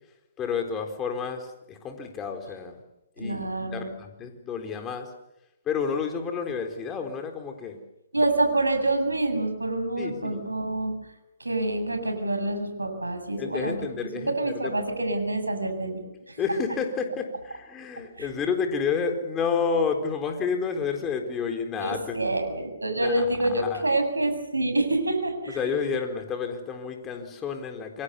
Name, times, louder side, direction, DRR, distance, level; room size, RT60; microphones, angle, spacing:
voice 1, 0.4-2.8 3.2-5.1 5.7-7.8 8.2-8.3 10.0-10.5 13.4-14.7 16.4-22.2 23.0-23.8 25.5-28.0, left 6 dB, 15° left, 5 dB, 4.2 m, -30 dB
voice 2, 3.2-3.9 8.1-10.9 11.4-13.8 14.1-16.4 18.2-18.3 21.8-25.6, right 2 dB, 85° right, 6 dB, 7.7 m, -27 dB
28.0 x 24.5 x 7.0 m, 0.90 s
figure-of-eight pair, 130°, 0 cm